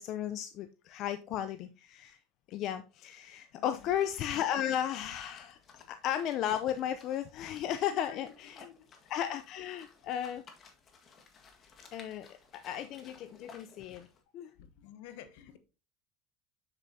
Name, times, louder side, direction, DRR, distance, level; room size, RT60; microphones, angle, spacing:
voice 1, 0.0-2.2 2.5-5.6 5.9-8.7 9.1-10.4 11.9-14.1 14.3-14.5, left 10 dB, 55° left, 0.6 m, -35 dB
voice 2, 3.6-3.9 8.0-8.3 8.6-8.9 14.6-15.6, left 11 dB, 75° left, 1.0 m, -51 dB
sound 1, 3.8-14.2, left 5 dB, 40° left, 1.6 m, -58 dB
7.1 x 6.7 x 2.7 m
supercardioid pair, 100°, 0 cm